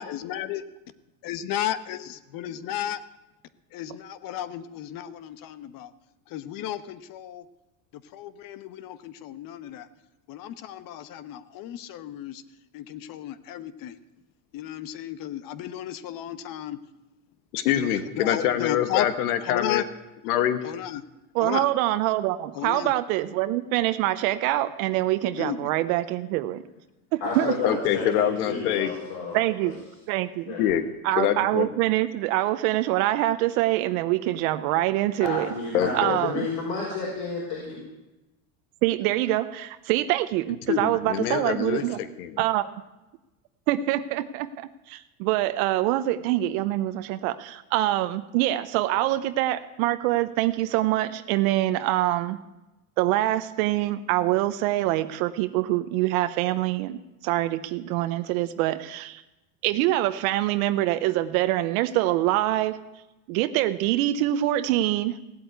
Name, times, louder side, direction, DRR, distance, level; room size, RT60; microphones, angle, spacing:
voice 1, 0.0-0.6 1.2-3.0 3.7-5.9 6.3-7.5 7.9-9.9 10.3-12.4 12.7-14.0 14.5-16.8 17.7-19.1 19.4-19.8 20.6-21.0 21.4-21.7 22.5-22.9 25.4-25.7 27.4-27.6, left 11 dB, 50° left, 14 dB, 1.1 m, -34 dB
voice 2, 17.5-19.8 20.3-20.6 27.6-28.9 30.6-30.8 31.2-31.7 35.7-36.2 40.7-42.4, left 10 dB, 85° left, 11 dB, 1.4 m, -25 dB
voice 3, 21.3-26.6 27.1-27.5 29.3-29.8 30.1-30.6 31.0-35.5 35.9-36.5 38.8-42.0 42.4-42.7 43.7-52.4 53.0-59.2 59.6-62.8 63.3-65.4, right 15 dB, 70° right, 11 dB, 0.9 m, -25 dB
voice 4, 27.2-29.7 30.5-30.7 35.2-37.8, left 3 dB, 70° left, -4 dB, 5.5 m, -31 dB
16.5 x 8.1 x 9.4 m, 1.0 s
supercardioid pair, 125°, 44 cm